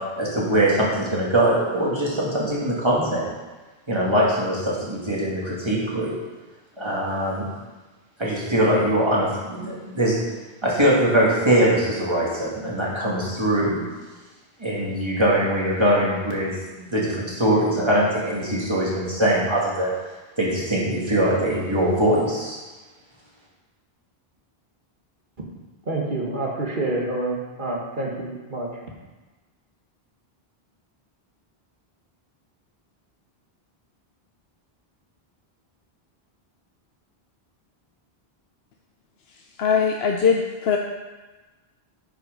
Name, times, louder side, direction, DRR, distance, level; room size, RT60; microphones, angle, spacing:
voice 1, 0.2-3.3 3.9-6.2 6.8-7.5 8.2-10.2 10.6-13.8 14.6-19.9 20.4-22.6, right 1 dB, 25° right, -5 dB, 2.3 m, -22 dB
voice 2, 25.9-28.7, right 2 dB, 55° right, -2 dB, 1.8 m, -27 dB
voice 3, 39.3-40.8, left 6 dB, 85° left, 2 dB, 0.9 m, -22 dB
10.0 x 5.8 x 5.3 m, 1.2 s
omnidirectional pair, 1.0 m